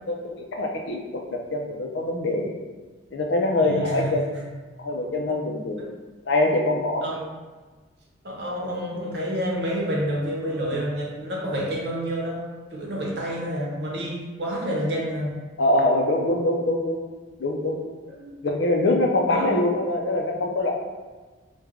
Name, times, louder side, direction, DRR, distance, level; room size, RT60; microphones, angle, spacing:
voice 1, 0.1-2.5 3.1-4.3 4.8-5.9 6.3-7.1 15.6-17.0 17.4-17.8 18.4-20.7, left 1 dB, 65° left, 1 dB, 0.5 m, -24 dB
voice 2, 3.6-4.2 5.8-5.9 7.0-7.2 8.2-15.4 18.2-18.3 19.3-19.5, equal, 55° right, -3 dB, 0.7 m, -29 dB
3.2 x 2.2 x 3.6 m, 1.4 s
head